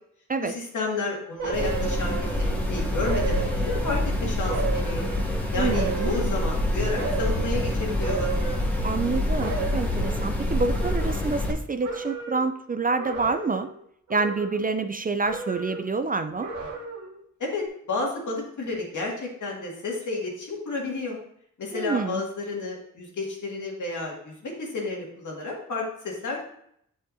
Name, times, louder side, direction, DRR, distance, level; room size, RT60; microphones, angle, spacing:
voice 1, 0.4-5.1 5.5-8.3 17.4-21.2 21.6-26.4, left 3 dB, 65° left, -1 dB, 2.1 m, -31 dB
sound 1, 1.4-2.7 3.0-4.1 4.5-6.6 7.0-7.5 8.0-9.1 9.4-11.6 11.8-12.5 13.0-13.8 14.1-14.9 15.2-15.9 16.4-17.2 17.6-17.7, right 4 dB, 70° right, 1.7 m, -34 dB
sound 2, 1.5-11.5, left 1 dB, 5° left, 1.6 m, -26 dB
voice 2, 5.6-6.1 8.8-13.7 14.1-16.5 21.7-22.2, right 4 dB, 25° right, 9 dB, 0.4 m, -27 dB
7.8 x 5.6 x 2.7 m, 0.69 s
cardioid pair, 55°, 32 cm